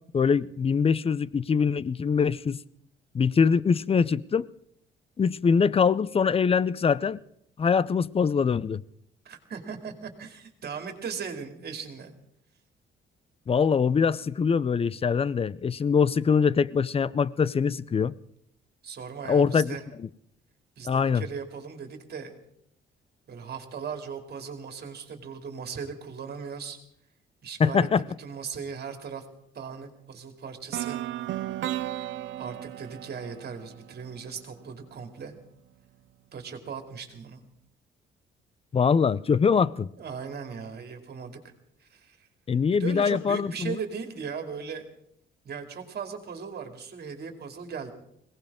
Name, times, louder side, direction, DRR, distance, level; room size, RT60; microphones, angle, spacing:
voice 1, 0.1-2.6 3.1-4.5 5.2-7.2 7.6-8.8 13.5-18.1 19.3-20.1 20.9-21.2 27.6-28.0 38.7-39.9 42.5-43.8, left 6 dB, 30° left, 0.5 m, -23 dB
voice 2, 9.2-12.1 18.8-19.8 20.8-22.3 23.3-26.8 27.4-29.2 29.5-31.0 32.4-35.3 36.3-37.4 40.0-41.4 41.8-42.3 42.8-44.9 45.4-47.9, right 6 dB, 55° right, 2.6 m, -38 dB
sound 1, 30.7-34.7, right 13 dB, 70° right, 0.5 m, -35 dB
21.5 x 18.0 x 3.6 m
cardioid pair, 90°, 20 cm